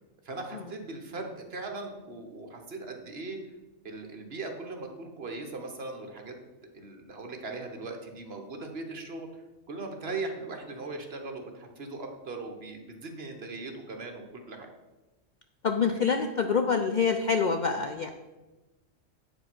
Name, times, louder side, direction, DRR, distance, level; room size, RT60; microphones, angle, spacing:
voice 1, 0.2-3.4 3.8-6.3 6.7-9.4 9.7-14.7, right 3 dB, 55° right, 3 dB, 1.3 m, -39 dB
voice 2, 15.6-18.1, left 5 dB, 55° left, 6 dB, 0.5 m, -26 dB
8.7 x 5.1 x 6.0 m, 1.1 s
omnidirectional pair, 1.3 m